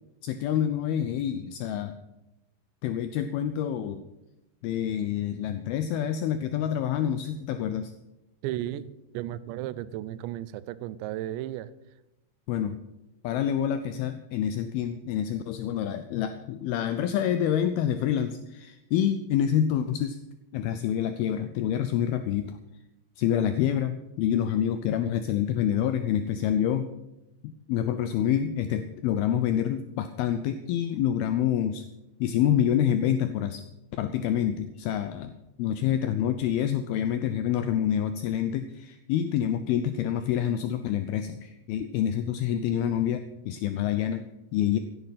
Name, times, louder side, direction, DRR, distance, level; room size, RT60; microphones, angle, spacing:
voice 1, 0.2-2.0 2.8-4.0 4.6-7.9 12.5-12.8 13.2-20.2 20.5-22.6 23.2-26.9 27.4-31.8 32.2-33.6 33.9-35.3 35.6-44.2 44.5-44.8, left 10 dB, 85° left, 10 dB, 2.2 m, -27 dB
voice 2, 8.4-11.7, right 13 dB, 85° right, 16 dB, 2.9 m, -34 dB
16.5 x 11.0 x 5.7 m, 0.93 s
omnidirectional pair, 5.1 m